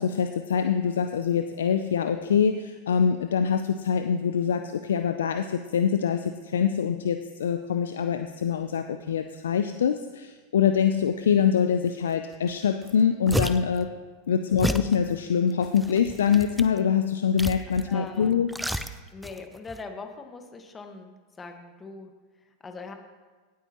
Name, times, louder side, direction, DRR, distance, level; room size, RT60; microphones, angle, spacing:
voice 1, 0.0-13.9 14.3-18.5, left 7 dB, 80° left, 9 dB, 0.4 m, -24 dB
sound 1, 12.5-12.6 12.8-13.8 14.6-15.0 15.6-16.8 17.4-17.9 18.2-19.4 19.7-19.8, equal, ahead, 0.6 m, -30 dB
voice 2, 14.3-14.7 17.9-18.3 19.1-22.9, left 3 dB, 20° left, 5 dB, 1.4 m, -41 dB
17.0 x 8.4 x 3.0 m, 1.4 s
hypercardioid pair, 95°, 0 cm